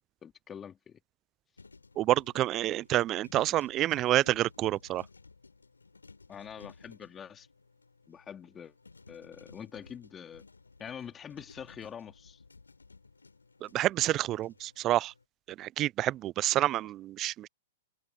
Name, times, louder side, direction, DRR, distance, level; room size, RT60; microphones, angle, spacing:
voice 1, 0.2-1.0 6.3-7.5 8.1-8.7 9.1-10.4 10.8-12.4, left 8 dB, 20° left, 3.5 m, -45 dB
sound 1, 1.6-15.2, left 3 dB, 90° left, 7.1 m, -57 dB
voice 2, 2.0-5.0 13.7-15.1 15.6-17.5, right 14 dB, 30° right, 0.5 m, -28 dB
open air
hypercardioid pair, 110°, 0 cm